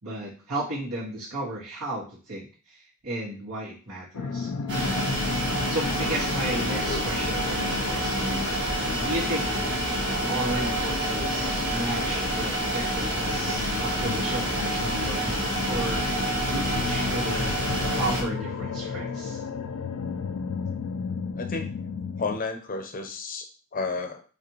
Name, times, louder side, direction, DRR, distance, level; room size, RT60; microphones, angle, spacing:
voice 1, 0.0-4.5 5.7-8.2 9.0-9.5 10.2-17.6 18.0-19.4, right 1 dB, 80° right, -8 dB, 1.9 m, -34 dB
sound 1, 4.1-22.4, left 5 dB, 75° left, 0.4 m, -34 dB
sound 2, 4.7-18.2, right 1 dB, 60° right, 1.5 m, -28 dB
voice 2, 21.3-21.7 22.2-24.2, left 3 dB, 40° left, 6 dB, 0.6 m, -32 dB
5.0 x 2.5 x 3.0 m, 0.38 s
head